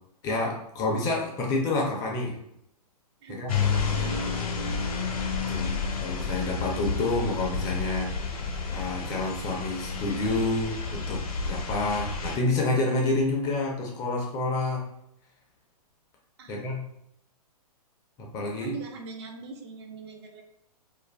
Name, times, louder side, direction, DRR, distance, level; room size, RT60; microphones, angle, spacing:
voice 1, 0.2-2.4 3.3-3.5 5.5-8.4 8.7-14.8 16.5-16.8 18.2-18.8, left 2 dB, 20° left, -1 dB, 0.4 m, -28 dB
sound 1, 3.5-12.4, left 5 dB, 65° left, 0.7 m, -30 dB
voice 2, 3.9-4.5 16.4-16.7 18.6-20.4, right 5 dB, 40° right, 3 dB, 0.4 m, -41 dB
2.4 x 2.2 x 3.1 m, 0.78 s
hypercardioid pair, 130°, 20 cm